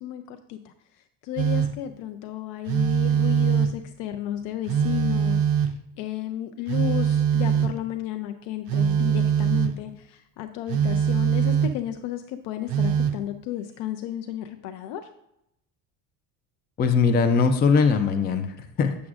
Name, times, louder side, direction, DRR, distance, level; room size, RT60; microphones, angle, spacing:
voice 1, 0.0-15.1, left 11 dB, 75° left, 7 dB, 0.6 m, -33 dB
Telephone, 1.4-1.9 2.7-3.9 4.7-5.9 6.7-7.9 8.7-9.8 10.7-11.9 12.7-13.2, right 7 dB, 55° right, 0.5 m, -23 dB
voice 2, 16.8-19.0, left 5 dB, 25° left, 8 dB, 0.4 m, -21 dB
8.3 x 6.1 x 2.4 m, 0.82 s
cardioid pair, 125°, 43 cm